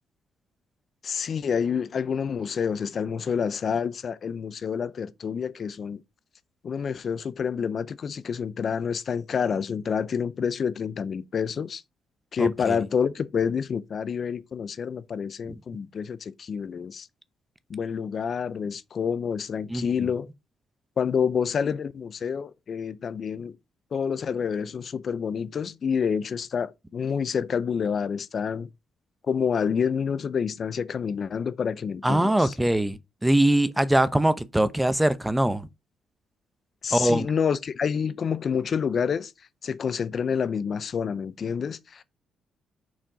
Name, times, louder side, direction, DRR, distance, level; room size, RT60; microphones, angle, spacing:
voice 1, 1.0-6.0 6.6-11.8 12.3-17.1 17.7-20.3 21.0-23.6 23.9-28.7 29.2-32.5 36.8-39.3 39.6-42.0, left 6 dB, 50° left, 0.5 m, -28 dB
voice 2, 12.4-12.8 19.7-19.9 32.0-35.7 36.9-37.3, right 1 dB, 10° right, 0.7 m, -22 dB
6.3 x 4.3 x 4.8 m
cardioid pair, 90°, 0 cm